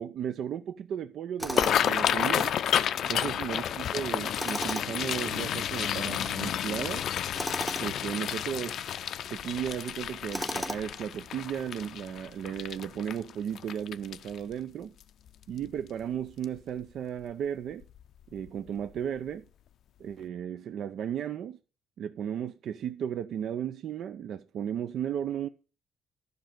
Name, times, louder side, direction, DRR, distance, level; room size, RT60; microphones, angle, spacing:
voice 1, 0.0-2.5 3.1-7.1 7.8-8.8 9.3-14.9 15.5-17.8 18.3-19.5 20.0-21.6 22.0-25.5, right 9 dB, 70° right, 0.5 m, -35 dB
sound 1, 1.4-14.5 15.0-15.3 15.6-16.0 16.4-16.6 17.8-18.0 18.4-18.5 19.0-19.1, left 10 dB, 70° left, 0.5 m, -31 dB
Tools, 1.4-2.0 4.3-5.1 7.3-7.9 10.3-11.0, equal, 5° right, 0.7 m, -35 dB
11.5 x 5.3 x 7.5 m
cardioid pair, 90°, 0 cm